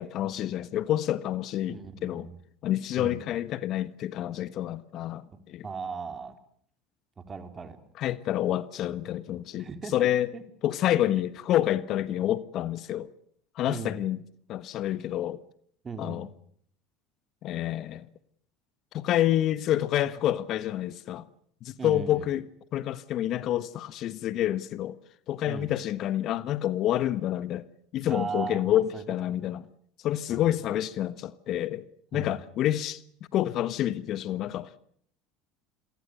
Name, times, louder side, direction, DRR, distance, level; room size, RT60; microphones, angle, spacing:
voice 1, 0.0-2.3 2.6-5.6 8.0-10.3 10.6-13.1 13.5-14.2 14.5-15.4 16.0-16.3 17.4-18.1 18.9-21.3 21.6-22.4 22.7-25.0 25.3-27.6 27.9-29.7 30.0-31.8 32.1-33.0 33.3-34.8, left 12 dB, 50° left, 1.3 m, -28 dB
voice 2, 1.7-2.4 3.0-3.2 5.6-6.4 7.2-7.8 9.5-10.1 10.3-10.4 13.7-14.0 15.8-16.3 21.8-22.3 25.5-25.7 28.1-29.0 29.3-29.4 30.3-30.4 32.1-32.3, right 5 dB, 30° right, 4.2 m, -37 dB
29.0 x 22.5 x 6.7 m
hypercardioid pair, 75°, 0 cm